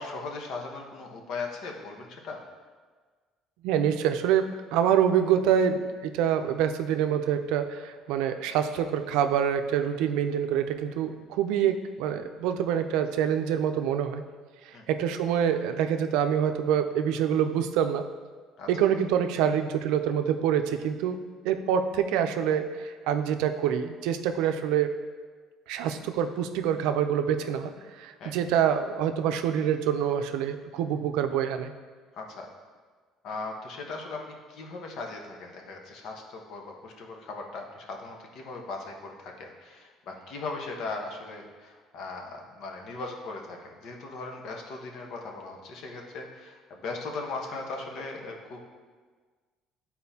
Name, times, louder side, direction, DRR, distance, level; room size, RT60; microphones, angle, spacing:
voice 1, 0.0-2.4 14.7-14.8 18.6-18.9 28.2-28.3 32.2-32.5 33.2-48.6, left 3 dB, 60° left, 1 dB, 1.1 m, -38 dB
voice 2, 3.6-14.2 14.7-18.0 18.7-24.9 25.7-27.7 28.0-31.7, right 9 dB, 85° right, 8 dB, 0.5 m, -26 dB
11.5 x 4.3 x 2.8 m, 1.5 s
cardioid pair, 125°, 0 cm